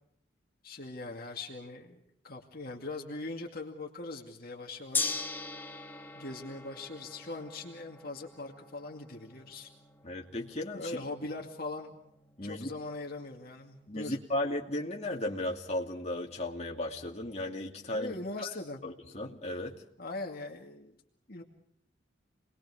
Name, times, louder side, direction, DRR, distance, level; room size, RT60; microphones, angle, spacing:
voice 1, 0.6-5.1 6.2-9.7 10.7-12.0 12.4-14.2 17.9-18.8 20.0-21.0 21.3-21.4, left 2 dB, 50° left, 1 dB, 2.3 m, -41 dB
Gong, 4.9-15.2, left 3 dB, 10° left, 1.9 m, -42 dB
voice 2, 10.0-11.0 12.4-12.7 13.9-18.1 18.4-18.5 18.8-19.8, left 1 dB, 35° left, -1 dB, 2.7 m, -35 dB
29.0 x 21.0 x 4.9 m, 0.73 s
head